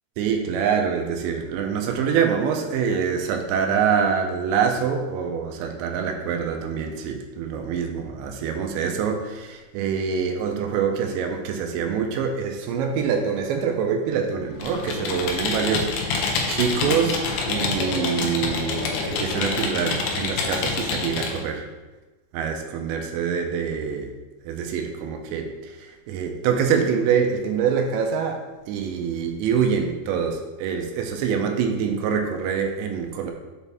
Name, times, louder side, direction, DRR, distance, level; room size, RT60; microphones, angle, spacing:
voice 1, 0.2-17.2 17.5-21.6 22.3-24.1 24.5-33.3, right 6 dB, 85° right, 4 dB, 2.9 m, -25 dB
Computer keyboard, 14.6-21.4, left 4 dB, 80° left, 2.1 m, -27 dB
7.1 x 4.1 x 3.4 m, 1.2 s
omnidirectional pair, 5.1 m